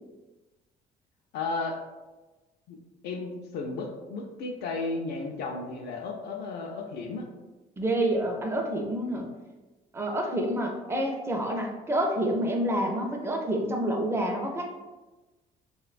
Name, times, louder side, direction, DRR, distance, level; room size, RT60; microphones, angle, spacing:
voice 1, 1.3-1.8 2.7-2.8 3.0-7.3, left 3 dB, 75° left, 1 dB, 0.4 m, -34 dB
voice 2, 7.8-9.3 9.9-14.7, right 1 dB, 15° right, 2 dB, 0.4 m, -28 dB
3.2 x 2.1 x 2.4 m, 1.2 s
cardioid pair, 110°, 17 cm